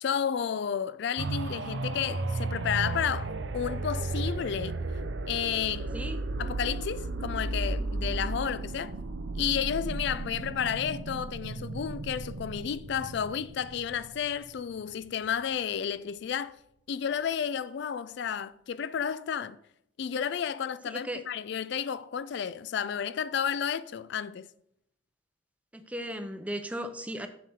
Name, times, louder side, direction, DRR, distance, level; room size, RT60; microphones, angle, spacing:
voice 1, 0.0-4.8 5.3-5.9 6.4-8.9 9.4-16.6 16.9-19.6 20.0-24.5, left 8 dB, 60° left, 0.3 m, -32 dB
sound 1, 1.2-14.8 15.3-15.4, right 2 dB, 60° right, 0.5 m, -34 dB
voice 2, 20.9-21.2 25.7-27.3, equal, 5° right, 0.6 m, -36 dB
7.4 x 7.3 x 4.2 m
head